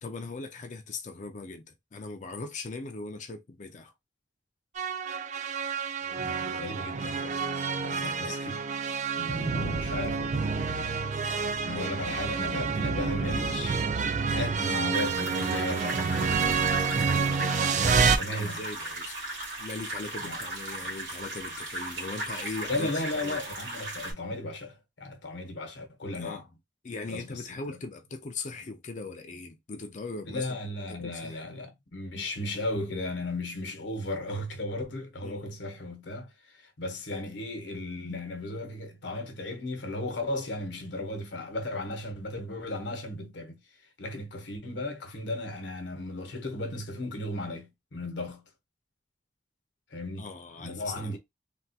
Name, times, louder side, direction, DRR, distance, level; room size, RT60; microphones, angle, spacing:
voice 1, 0.0-3.9 7.9-8.4 11.7-12.1 18.2-19.2 19.6-23.4 26.1-26.4 26.8-31.4 35.2-35.5 50.2-51.2, left 3 dB, 40° left, 0.5 m, -40 dB
sound 1, 4.8-18.2, right 5 dB, 40° right, 0.4 m, -28 dB
voice 2, 6.2-7.4 7.7-8.6 9.1-10.6 11.6-13.8 14.3-16.3 18.2-18.6 20.2-20.4 22.7-26.4 27.1-27.8 30.3-36.3 36.6-43.6 44.0-48.4 49.9-50.3 50.6-51.2, left 2 dB, 75° left, 1.0 m, -35 dB
sound 2, 14.9-24.1, right 1 dB, 75° right, 1.8 m, -37 dB
3.5 x 2.4 x 2.7 m
head